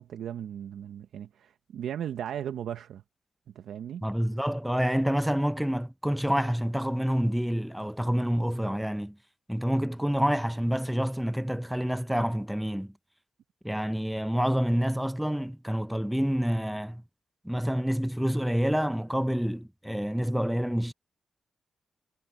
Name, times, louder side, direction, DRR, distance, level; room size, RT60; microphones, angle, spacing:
voice 1, 0.0-3.0 3.5-4.0, right 9 dB, 85° right, 0.7 m, -36 dB
voice 2, 4.0-9.2 9.5-12.9 13.6-17.0 17.4-20.9, equal, 5° right, 0.5 m, -28 dB
cardioid pair, 70°, 0 cm